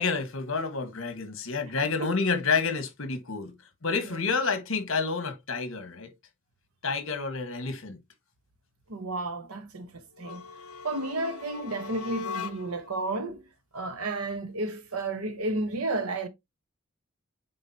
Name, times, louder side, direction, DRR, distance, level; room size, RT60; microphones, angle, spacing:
voice 1, 0.0-3.5 3.8-6.1 6.8-8.0, left 4 dB, 60° left, 1.4 m, -29 dB
voice 2, 1.8-2.1 4.0-4.2 8.9-10.4 10.8-13.4 13.7-16.3, right 2 dB, 85° right, 1.1 m, -32 dB
sound 1, 10.2-12.9, left 6 dB, 85° left, 0.6 m, -40 dB
8.6 x 3.9 x 2.8 m
head